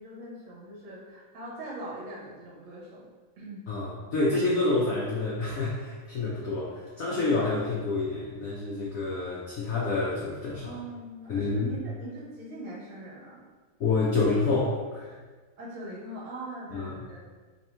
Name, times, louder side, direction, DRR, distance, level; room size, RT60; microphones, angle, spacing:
voice 1, 0.0-3.0 3.4-3.6 10.6-13.4 15.6-17.2, right 1 dB, 65° right, -4 dB, 1.6 m, -41 dB
voice 2, 3.7-10.7 11.3-11.7 13.8-15.1 16.7-16.9, left 3 dB, 90° left, -5 dB, 0.7 m, -28 dB
3.4 x 2.9 x 3.3 m, 1.3 s
omnidirectional pair, 2.2 m